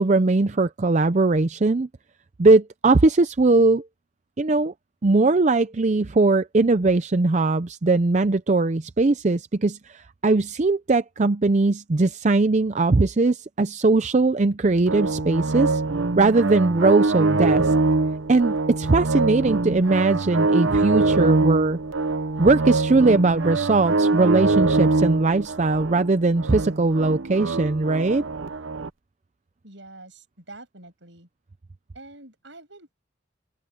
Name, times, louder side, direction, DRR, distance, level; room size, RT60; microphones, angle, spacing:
voice 1, 0.0-1.9 2.4-3.8 4.4-4.7 5.0-15.8 16.2-17.7 18.3-21.8 22.4-28.2, right 3 dB, 35° right, 0.5 m, -20 dB
sound 1, 14.9-28.9, right 3 dB, 90° right, 1.0 m, -23 dB
voice 2, 29.6-31.3 31.9-32.9, right 2 dB, 70° right, 7.4 m, -45 dB
head